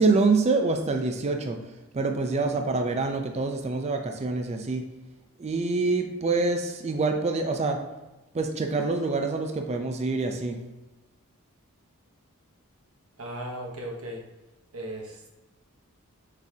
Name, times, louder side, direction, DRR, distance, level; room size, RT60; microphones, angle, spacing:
voice 1, 0.0-1.6 1.9-4.8 5.4-7.8 8.3-10.6, right 3 dB, 30° right, 4 dB, 0.3 m, -26 dB
voice 2, 13.2-14.2 14.7-15.4, right 1 dB, 70° right, 0 dB, 0.9 m, -37 dB
4.6 x 3.9 x 2.7 m, 1.1 s
head